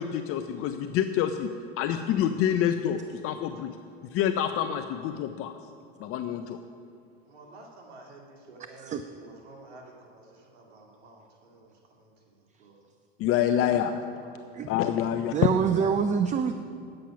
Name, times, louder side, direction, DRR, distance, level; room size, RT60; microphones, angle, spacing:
voice 1, 0.0-3.8 4.1-5.5 6.0-6.6 13.2-13.9 14.7-15.3 15.8-15.9, left 10 dB, 45° left, 8 dB, 0.6 m, -27 dB
voice 2, 7.3-12.1 12.6-12.8 13.8-14.5, right 2 dB, 85° right, -1 dB, 2.2 m, -51 dB
voice 3, 15.3-16.5, right 7 dB, 25° right, 9 dB, 0.4 m, -25 dB
10.0 x 7.7 x 5.8 m, 2.4 s
hypercardioid pair, 100°, 32 cm